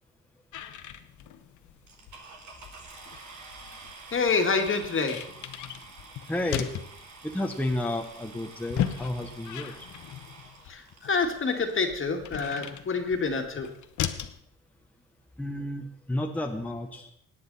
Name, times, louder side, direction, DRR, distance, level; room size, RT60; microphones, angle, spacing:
sound 1, 0.5-14.4, left 11 dB, 75° left, 1.0 m, -38 dB
sound 2, 1.9-11.8 12.6-12.7 13.2-13.3 13.5-13.8, right 3 dB, 70° right, 2.5 m, -49 dB
voice 1, 4.1-5.2 10.7-13.7, left 4 dB, 40° left, 5 dB, 2.0 m, -27 dB
voice 2, 6.3-6.7 7.2-9.9 15.4-17.1, left 1 dB, 5° left, 3 dB, 1.1 m, -31 dB
17.5 x 9.3 x 4.1 m, 0.71 s
cardioid pair, 90°, 30 cm